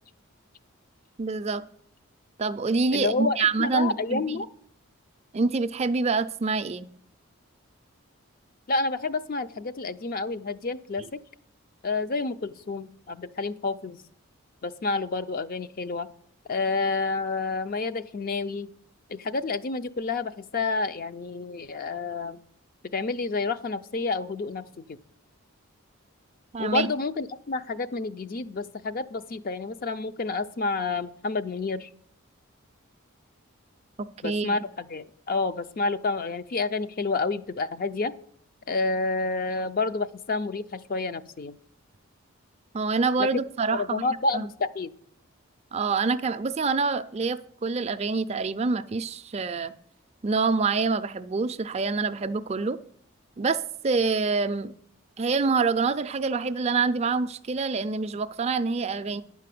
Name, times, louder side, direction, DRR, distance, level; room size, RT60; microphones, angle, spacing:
voice 1, 1.2-1.6 2.4-4.2 5.3-6.9 26.5-26.9 34.0-34.6 42.7-44.0 44.3-44.5 45.7-49.7 50.2-52.8 53.4-54.7 55.2-59.2, right 4 dB, 30° right, 0.4 m, -26 dB
voice 2, 2.9-4.5 8.7-11.0 11.8-14.0 14.6-16.1 16.5-18.7 19.1-22.4 22.9-25.0 26.6-31.9 34.2-38.1 38.7-41.5 43.2-43.3 43.7-44.9, left 3 dB, 40° left, 0.4 m, -29 dB
9.9 x 5.8 x 7.6 m
head